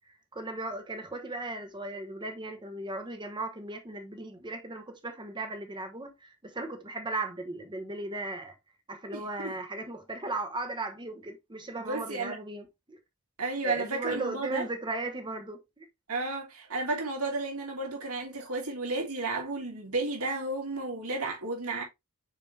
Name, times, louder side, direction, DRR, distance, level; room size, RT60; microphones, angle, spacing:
voice 1, 0.3-8.5 8.9-13.0 13.6-15.9, right 2 dB, 20° right, 1.1 m, -37 dB
voice 2, 9.1-9.6 11.7-12.4 13.4-14.7 16.1-21.8, right 3 dB, 70° right, 3.1 m, -33 dB
6.7 x 5.0 x 3.3 m
head